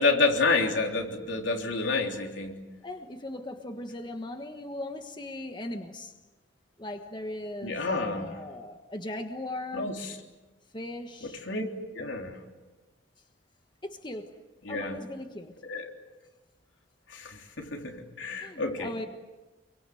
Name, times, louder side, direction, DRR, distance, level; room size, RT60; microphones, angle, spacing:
voice 1, 0.0-2.6 7.6-8.4 9.7-10.2 11.2-11.6 11.9-12.4 14.6-15.0 15.6-15.9 17.1-18.9, left 3 dB, 75° left, 2 dB, 3.6 m, -29 dB
voice 2, 2.8-6.1 6.8-10.0 10.7-11.4 13.8-14.3 14.7-15.5 18.4-19.1, left 1 dB, 25° left, 5 dB, 1.4 m, -38 dB
28.0 x 23.5 x 7.8 m, 1.2 s
head